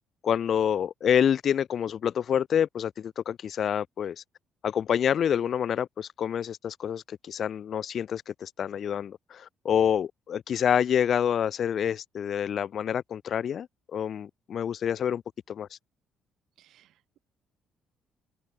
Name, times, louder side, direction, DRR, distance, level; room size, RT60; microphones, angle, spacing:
voice 1, 0.2-4.2 4.6-13.7 13.9-15.2 15.5-15.7, left 8 dB, 55° left, 0.3 m, -27 dB
voice 2, 16.6-17.2, right 13 dB, 75° right, 0.7 m, -62 dB
open air
cardioid pair, 90°, 0 cm